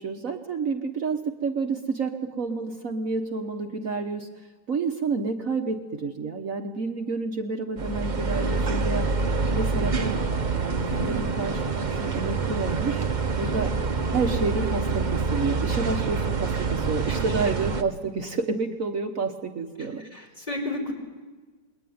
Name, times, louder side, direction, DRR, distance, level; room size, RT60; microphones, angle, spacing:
voice 1, 0.0-4.3 4.7-9.1 9.5-10.2 10.5-13.0 13.4-13.7 14.1-20.1, right 4 dB, 55° right, 4 dB, 1.6 m, -29 dB
sound 1, 7.8-17.8, right 4 dB, 30° right, 1.1 m, -26 dB
voice 2, 20.1-20.9, left 2 dB, 25° left, 1 dB, 5.2 m, -32 dB
28.0 x 21.5 x 9.5 m, 1.4 s
omnidirectional pair, 1.8 m